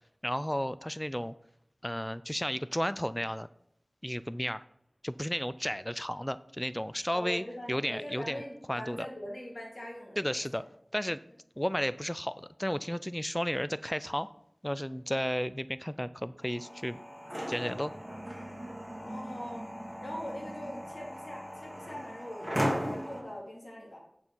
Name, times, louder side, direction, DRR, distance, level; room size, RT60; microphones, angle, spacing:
voice 1, 0.2-1.3 1.8-3.5 4.0-4.6 5.0-8.4 8.7-9.1 10.2-10.6 10.9-11.2 11.6-14.3 14.6-17.0 17.5-17.9, equal, 10° left, 14 dB, 0.3 m, -33 dB
voice 2, 7.1-10.4 19.0-19.7 20.0-24.0, left 1 dB, 70° left, -1 dB, 2.5 m, -42 dB
sound 1, 16.4-23.2, equal, 10° right, 2.1 m, -37 dB
8.6 x 5.5 x 4.6 m, 0.74 s
wide cardioid pair, 45°, 0 cm